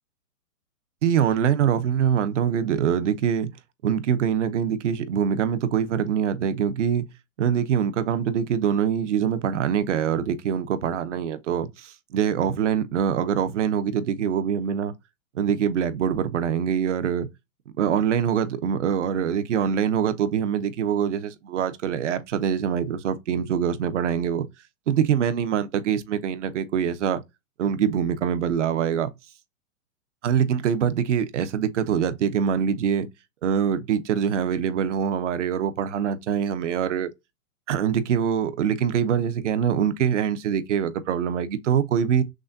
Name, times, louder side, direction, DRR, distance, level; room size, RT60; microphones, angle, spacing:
voice 1, 1.0-3.5 3.8-7.1 7.4-14.9 15.3-17.3 17.8-24.5 24.9-27.2 27.6-29.1 30.2-33.1 33.4-37.1 37.7-42.2, right 8 dB, 55° right, 0.8 m, -24 dB
6.1 x 2.2 x 2.6 m
hypercardioid pair, 160°, 43 cm